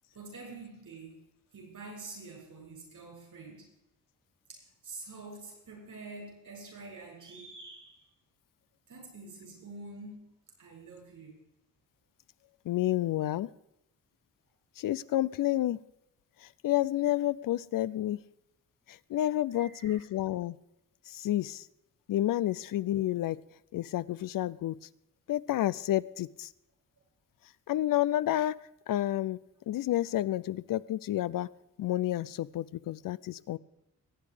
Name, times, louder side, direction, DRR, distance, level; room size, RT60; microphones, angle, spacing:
voice 1, 0.1-1.2 1.5-3.7 4.5-8.1 8.9-10.3 10.6-11.4 19.5-20.0, right 3 dB, 70° right, 0 dB, 7.3 m, -47 dB
voice 2, 12.7-13.5 14.8-15.8 16.4-18.2 18.9-20.6 21.1-21.7 22.1-23.4 23.7-24.8 25.3-26.5 27.7-28.6 28.9-31.5 31.8-33.6, left 13 dB, 80° left, 18 dB, 0.5 m, -30 dB
21.0 x 8.5 x 5.1 m, 0.84 s
cardioid pair, 70°, 33 cm